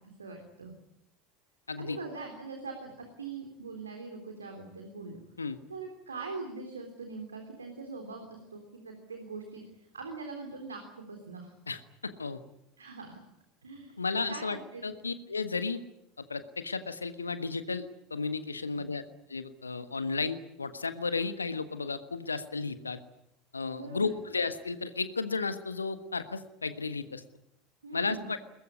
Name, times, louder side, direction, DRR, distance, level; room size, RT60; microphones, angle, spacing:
voice 1, 0.2-0.7 1.8-5.2 5.7-9.6 9.9-11.5 12.8-13.2 13.6-14.0 14.3-14.8 18.7-18.8 23.7-24.2 27.8-28.3, right 4 dB, 80° right, 4 dB, 3.4 m, -42 dB
voice 2, 11.7-12.4 14.0-15.8 16.2-17.8 18.1-19.0 19.3-23.0 23.5-27.2 27.9-28.4, left 4 dB, 85° left, 11 dB, 1.5 m, -33 dB
22.5 x 20.5 x 9.7 m, 0.83 s
figure-of-eight pair, 75°, 0 cm